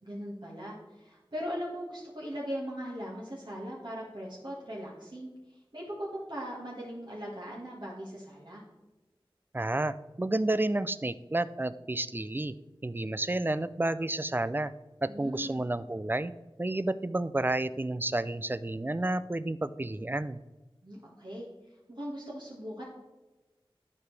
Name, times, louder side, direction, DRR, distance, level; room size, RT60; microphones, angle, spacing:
voice 1, 0.0-8.6 15.1-15.6 20.8-21.5 21.9-22.8, equal, 55° right, -5 dB, 1.7 m, -39 dB
voice 2, 9.5-12.5 12.8-14.7 15.0-16.3 16.6-20.4, right 2 dB, 20° right, 15 dB, 0.3 m, -30 dB
11.5 x 4.8 x 3.3 m, 1.1 s
wide cardioid pair, 45°, 9 cm